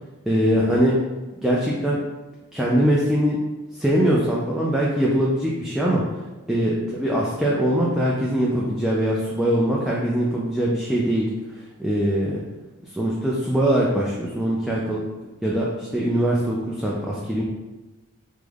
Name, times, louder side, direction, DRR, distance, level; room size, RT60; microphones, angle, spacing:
voice 1, 0.3-1.0 1.4-2.0 2.5-3.4 3.8-6.0 6.5-11.3 11.8-12.4 12.9-15.0 15.4-17.4, equal, ahead, -6 dB, 0.3 m, -22 dB
3.4 x 2.0 x 3.3 m, 1.1 s
head